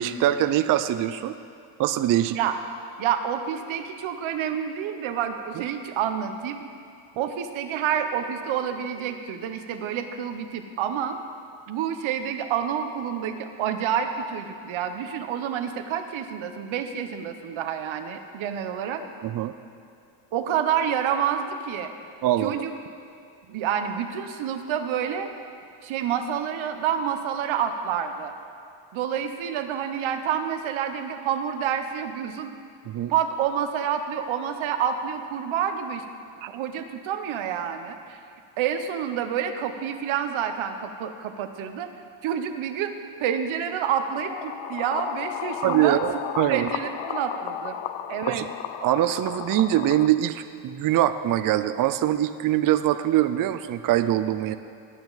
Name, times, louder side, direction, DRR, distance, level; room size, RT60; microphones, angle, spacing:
voice 1, 0.0-1.3 1.8-2.4 19.2-19.5 22.2-22.6 32.9-33.1 36.4-36.5 45.6-46.7 48.3-48.5 48.8-54.6, right 13 dB, 45° right, 12 dB, 0.4 m, -23 dB
voice 2, 3.0-6.6 7.2-11.2 11.7-19.0 20.3-21.9 22.4-22.7 23.5-25.4 25.8-28.3 28.9-32.5 33.1-36.0 36.5-38.2 38.6-41.9 42.2-46.0 46.5-47.8 48.1-48.5, right 8 dB, 70° right, 8 dB, 1.0 m, -28 dB
sound 1, 44.0-50.1, left 11 dB, 65° left, 0.6 m, -34 dB
19.5 x 6.9 x 4.0 m, 2.5 s
cardioid pair, 135°, 49 cm